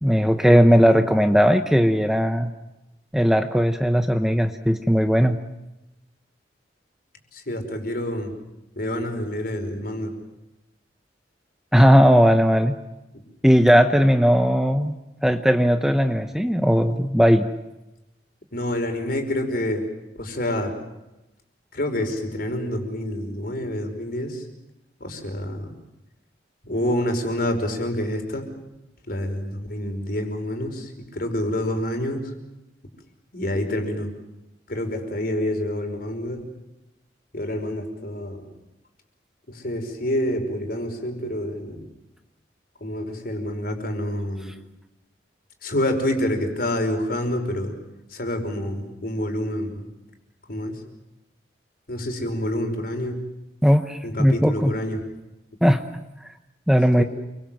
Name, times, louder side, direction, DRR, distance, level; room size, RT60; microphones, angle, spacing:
voice 1, 0.0-2.5 3.1-5.4 11.7-12.8 13.4-14.9 15.2-17.5 53.6-54.7 55.6-55.8 56.7-57.0, equal, 5° right, 6 dB, 1.0 m, -17 dB
voice 2, 0.7-1.0 7.3-8.3 8.7-10.1 18.5-19.8 20.2-20.7 21.7-24.4 25.0-25.7 26.6-28.5 29.1-32.2 33.3-34.1 34.7-36.4 37.3-38.5 39.5-41.8 42.8-44.5 45.6-47.7 48.1-49.9 50.5-50.8 51.9-53.2 54.0-55.0 57.0-57.1, left 1 dB, 55° left, 5 dB, 5.3 m, -27 dB
29.0 x 24.0 x 7.7 m, 0.96 s
head